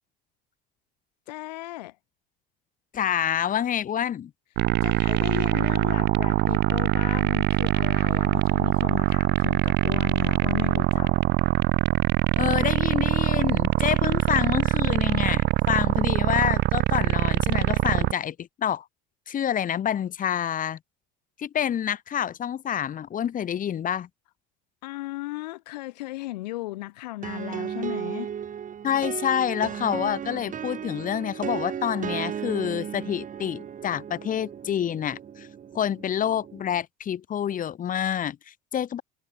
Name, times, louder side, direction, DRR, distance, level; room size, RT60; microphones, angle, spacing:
voice 1, 1.3-2.0 4.8-11.1 24.8-28.3, left 19 dB, 85° left, 6.0 m, -36 dB
voice 2, 2.9-4.3 12.4-18.8 19.3-20.8 21.4-24.1 28.8-35.5 35.7-39.0, left 9 dB, 40° left, 3.1 m, -27 dB
sound 1, 4.6-18.1, right 16 dB, 55° right, 1.0 m, -23 dB
sound 2, 27.2-36.8, right 8 dB, 40° right, 5.9 m, -35 dB
supercardioid pair, 90°, 21 cm